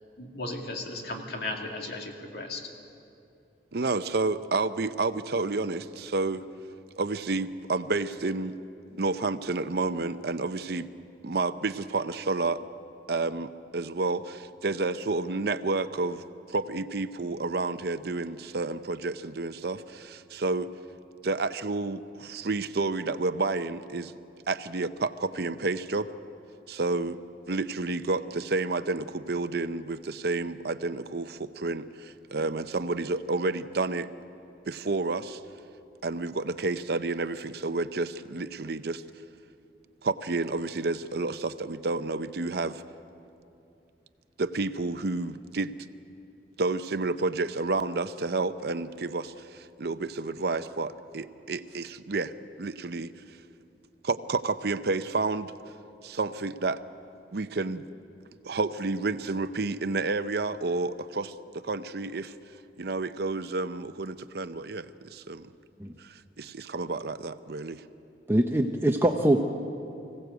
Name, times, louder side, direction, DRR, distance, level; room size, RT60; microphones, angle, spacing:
voice 1, 0.2-2.7, left 2 dB, 60° left, 2 dB, 2.5 m, -36 dB
voice 2, 3.7-6.4 7.0-8.5 8.9-10.9 11.2-12.6 13.1-16.2 16.5-20.7 21.2-24.1 24.5-26.1 26.7-27.2 27.5-34.1 34.7-35.4 36.0-39.0 40.0-42.8 44.4-45.7 46.6-53.1 54.0-55.5 56.0-56.8 57.3-57.9 58.4-62.3 62.8-65.5 66.0-67.8, right 3 dB, 60° right, 12 dB, 0.7 m, -30 dB
voice 3, 68.3-69.4, right 1 dB, 15° right, 3 dB, 0.8 m, -23 dB
25.0 x 16.5 x 8.1 m, 2.7 s
head